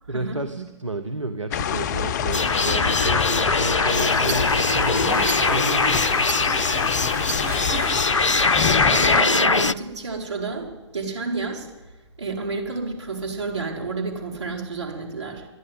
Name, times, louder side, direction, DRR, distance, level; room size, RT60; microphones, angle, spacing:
voice 1, 0.1-6.3, right 2 dB, 90° right, 7 dB, 1.0 m, -31 dB
sound 1, 1.5-9.2, left 9 dB, 35° left, 0.5 m, -26 dB
sound 2, 2.3-9.7, left 3 dB, 90° left, 0.5 m, -22 dB
sound 3, 3.9-8.0, right 7 dB, 15° right, 0.9 m, -35 dB
voice 2, 8.8-11.7 12.2-15.5, right 4 dB, 70° right, 0 dB, 4.6 m, -30 dB
12.5 x 11.0 x 9.2 m, 1.2 s
figure-of-eight pair, 120°, 15 cm